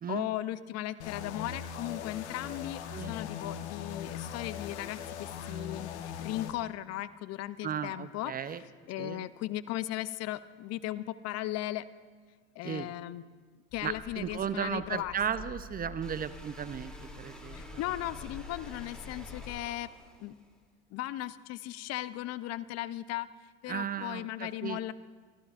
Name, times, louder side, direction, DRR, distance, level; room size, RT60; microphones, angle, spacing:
voice 1, 0.1-2.8 3.1-8.3 8.9-11.8 12.6-13.2 13.7-15.1 17.5-19.9 20.2-20.4 20.9-23.3 23.6-24.9, left 14 dB, 50° left, 16 dB, 0.5 m, -37 dB
sound 1, 1.0-6.5, left 8 dB, 85° left, 1.1 m, -40 dB
voice 2, 7.6-8.6 9.0-9.3 12.6-12.9 13.8-17.6 23.7-24.9, right 8 dB, 25° right, 14 dB, 0.6 m, -35 dB
sound 2, 13.7-19.6, left 4 dB, 30° left, 2.3 m, -47 dB
sound 3, 16.0-20.6, equal, ahead, 2.7 m, -51 dB
23.5 x 15.5 x 2.5 m, 1.5 s
hypercardioid pair, 85°, 33 cm